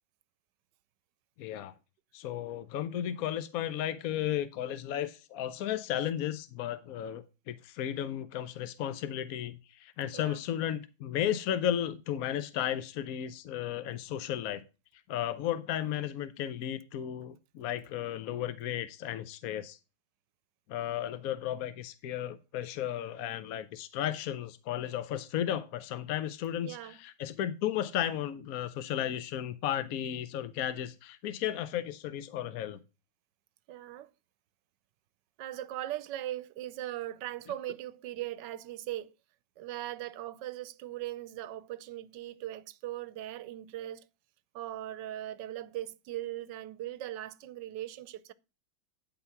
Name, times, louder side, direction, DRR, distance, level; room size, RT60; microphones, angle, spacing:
voice 1, 1.4-1.7 2.1-14.6 15.1-19.8 20.7-32.8, left 11 dB, 65° left, 0.9 m, -34 dB
voice 2, 26.6-27.0 33.7-34.1 35.4-39.1 39.6-44.0 44.5-48.3, right 13 dB, 75° right, 1.2 m, -39 dB
11.5 x 4.1 x 5.7 m
omnidirectional pair, 2.1 m